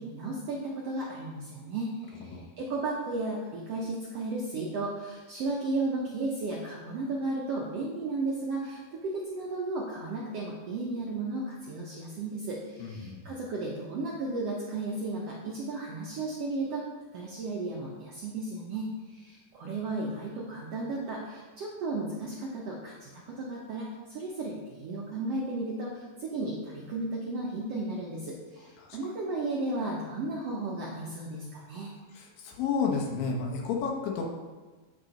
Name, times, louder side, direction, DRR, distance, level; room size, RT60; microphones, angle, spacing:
voice 1, 0.0-16.8 17.1-31.9, right 2 dB, 70° right, -4 dB, 1.5 m, -34 dB
voice 2, 12.8-13.2 28.8-29.0 32.1-34.2, left 5 dB, 85° left, 0 dB, 2.8 m, -31 dB
8.9 x 4.4 x 5.1 m, 1.3 s
omnidirectional pair, 4.0 m